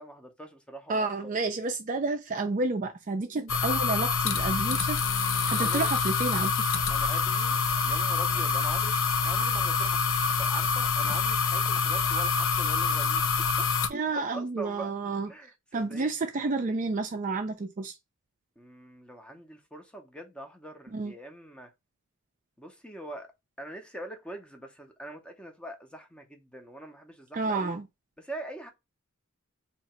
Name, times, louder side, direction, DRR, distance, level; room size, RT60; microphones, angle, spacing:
voice 1, 0.0-1.1 5.5-5.9 6.9-7.6 7.8-10.0 10.4-13.3 13.6-13.7 14.1-14.9 15.3-16.3 18.6-21.7 22.6-23.3 23.6-27.8 28.2-28.7, right 1 dB, 5° left, 0.6 m, -43 dB
voice 2, 0.9-5.0 5.5-6.5 13.9-15.3 15.7-17.9 20.9-21.1 27.3-27.9, right 3 dB, 35° right, 0.4 m, -30 dB
sound 1, 3.5-13.9, left 5 dB, 60° left, 0.6 m, -26 dB
2.8 x 2.7 x 4.2 m
head